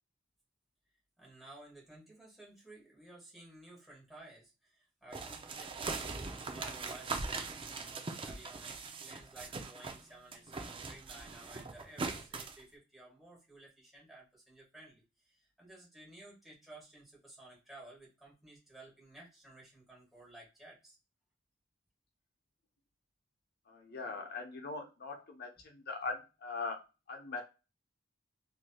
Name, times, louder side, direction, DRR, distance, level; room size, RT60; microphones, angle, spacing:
voice 1, 1.2-21.0, right 2 dB, ahead, -4 dB, 1.5 m, -55 dB
sound 1, 5.1-10.0 10.3-12.6, right 4 dB, 30° right, 0.4 m, -41 dB
voice 2, 23.7-27.4, left 3 dB, 55° left, 3 dB, 0.8 m, -41 dB
3.2 x 2.7 x 2.3 m, 0.29 s
head